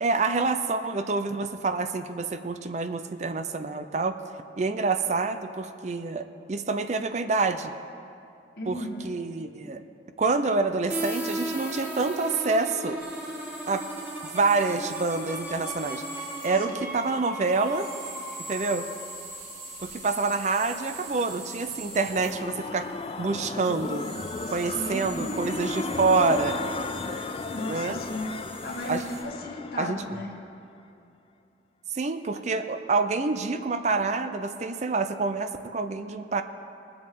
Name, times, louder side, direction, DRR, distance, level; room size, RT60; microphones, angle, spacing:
voice 1, 0.0-4.2 4.6-7.7 8.7-9.8 10.2-13.0 13.7-13.8 14.2-16.0 16.4-17.9 18.5-18.9 19.8-22.9 23.2-24.1 24.5-26.6 27.7-28.0 28.9-29.0 29.8-30.0 31.9-36.4, right 3 dB, 40° right, 9 dB, 0.5 m, -27 dB
voice 2, 8.6-9.2 9.4-9.6 24.5-25.3 27.5-28.4 28.6-30.4, left 1 dB, 55° left, 1 dB, 1.4 m, -35 dB
sound 1, 10.9-20.5, right 1 dB, 10° right, 1.3 m, -36 dB
sound 2, 13.0-29.2, right 2 dB, 90° right, 2.8 m, -44 dB
sound 3, 21.7-30.5, left 3 dB, 30° left, 0.4 m, -35 dB
20.5 x 7.8 x 3.7 m, 2.6 s
head